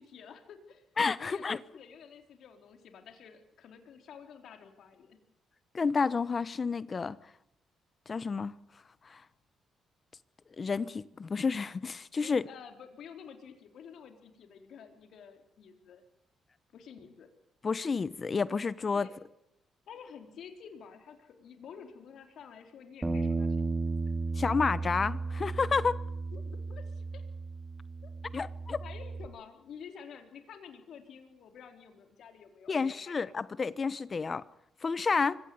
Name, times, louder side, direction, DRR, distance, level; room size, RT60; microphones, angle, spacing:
voice 1, 0.0-0.9 1.1-5.2 12.2-16.0 16.7-17.3 18.9-19.2 19.9-23.8 26.3-26.4 26.7-27.2 28.0-28.1 28.8-33.2, left 7 dB, 70° left, 4.1 m, -50 dB
voice 2, 1.0-1.6 5.7-7.2 8.1-8.5 9.0-9.2 10.6-12.4 17.6-19.1 24.4-26.0 28.3-28.8 32.7-34.4 34.8-35.4, left 5 dB, 35° left, 1.0 m, -30 dB
Bass guitar, 23.0-29.3, right 3 dB, 15° right, 2.1 m, -34 dB
24.5 x 17.0 x 9.5 m
cardioid pair, 90°, 0 cm